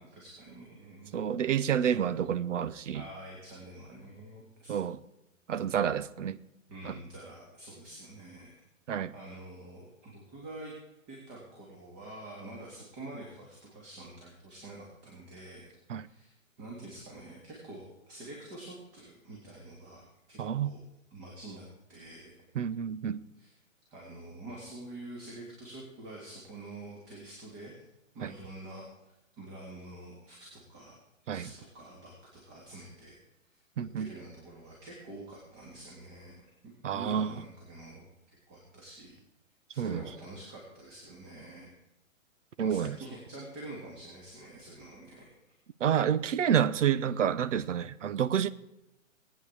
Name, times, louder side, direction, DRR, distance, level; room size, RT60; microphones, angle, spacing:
voice 1, 0.0-1.2 2.0-2.1 2.9-4.8 6.7-8.5 9.1-10.7 11.1-15.7 16.0-16.3 16.6-20.8 21.1-22.3 23.4-23.5 23.9-27.8 28.1-28.9 29.4-31.0 31.3-33.1 33.8-39.1 39.7-41.8 42.6-45.4, right 2 dB, 25° right, 3.3 m, -47 dB
voice 2, 1.1-3.0 4.7-5.0 5.5-6.4 6.8-7.0 8.9-9.1 15.9-16.1 20.4-20.8 22.5-23.2 28.2-28.3 31.3-31.5 33.8-34.1 36.8-37.3 39.8-40.0 42.6-43.0 45.8-48.5, right 8 dB, 65° right, 0.8 m, -29 dB
20.0 x 9.3 x 4.8 m
hypercardioid pair, 140°, 40 cm